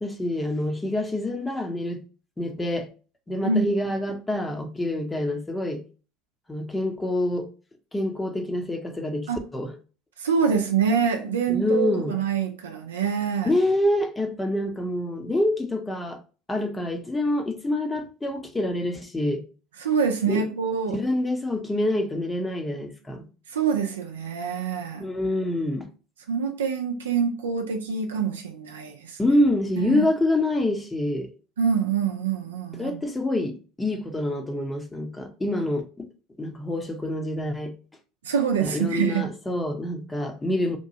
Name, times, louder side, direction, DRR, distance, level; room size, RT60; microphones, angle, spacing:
voice 1, 0.0-2.0 2.4-2.9 3.3-5.8 6.5-7.5 7.9-9.8 11.5-12.2 13.4-16.2 16.5-19.4 20.2-20.4 20.9-23.3 25.0-25.9 29.2-31.3 32.8-36.1 36.4-37.7 38.6-40.8, left 1 dB, 15° left, 0.7 m, -26 dB
voice 2, 10.2-13.5 19.8-21.0 23.5-25.1 26.3-29.2 29.8-30.1 31.6-33.0 38.2-39.3, right 6 dB, 85° right, 0.4 m, -25 dB
2.9 x 2.2 x 2.7 m
hypercardioid pair, 75°, 0 cm